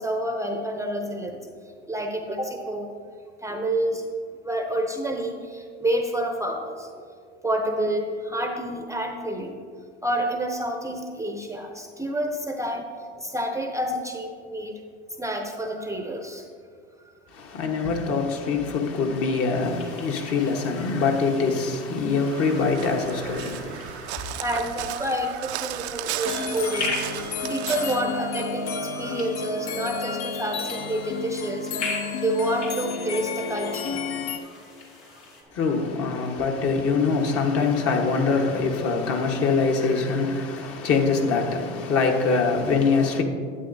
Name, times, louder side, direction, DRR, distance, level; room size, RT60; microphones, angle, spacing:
voice 1, 0.0-1.4 1.9-2.9 3.4-4.1 4.4-6.9 7.4-9.6 10.0-12.9 13.2-14.7 15.2-16.5 24.4-34.2 34.4-34.6 35.1-35.2, right 1 dB, 10° right, 0.6 m, -29 dB
voice 2, 17.3-24.4 35.5-43.2, left 4 dB, 45° left, 1.2 m, -24 dB
sound 1, 19.6-35.4, left 3 dB, 85° left, 1.9 m, -40 dB
Crow, 22.2-28.0, right 13 dB, 80° right, 0.5 m, -35 dB
sound 2, 26.2-34.4, left 4 dB, 65° left, 0.8 m, -31 dB
11.0 x 8.6 x 2.6 m
hypercardioid pair, 90°, 33 cm